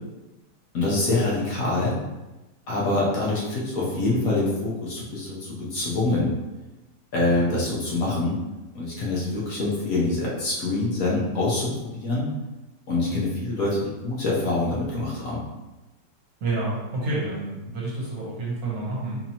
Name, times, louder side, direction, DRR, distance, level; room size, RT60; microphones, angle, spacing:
voice 1, 0.7-2.0 2.7-6.3 7.1-8.4 8.7-12.3 12.9-15.4, left 2 dB, 60° left, -5 dB, 1.2 m, -25 dB
voice 2, 16.4-19.2, right 2 dB, 60° right, -5 dB, 1.4 m, -29 dB
4.2 x 2.9 x 2.8 m, 1.1 s
omnidirectional pair, 1.9 m